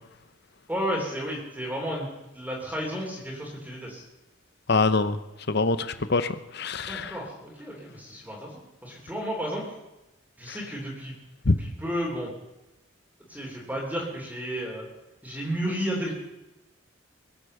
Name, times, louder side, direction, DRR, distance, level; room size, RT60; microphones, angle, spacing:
voice 1, 0.7-2.1 2.3-4.0 6.9-9.7 10.4-11.1 11.6-12.3 13.3-14.9 15.2-16.1, equal, 10° right, -3 dB, 3.1 m, -32 dB
voice 2, 4.7-5.2 5.5-7.2 10.5-10.6 11.5-11.6, left 3 dB, 55° left, 12 dB, 0.9 m, -24 dB
22.0 x 8.4 x 6.6 m, 0.97 s
head